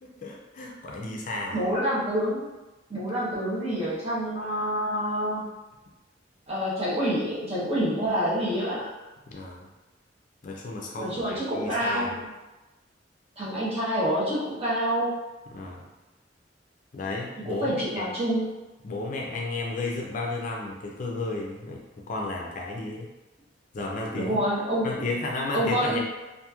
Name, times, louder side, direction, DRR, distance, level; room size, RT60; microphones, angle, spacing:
voice 1, 0.0-1.7 9.3-9.7 10.4-12.1 15.5-15.8 16.9-18.1 18.8-23.1 23.7-24.4 24.8-26.0, left 2 dB, 45° left, -1 dB, 0.4 m, -33 dB
voice 2, 1.5-2.5 2.9-5.4 6.5-8.9 11.0-12.3 13.4-15.2 17.4-18.5 24.1-25.0 25.5-26.0, equal, 35° right, -8 dB, 0.9 m, -27 dB
2.9 x 2.5 x 2.3 m, 1.1 s
head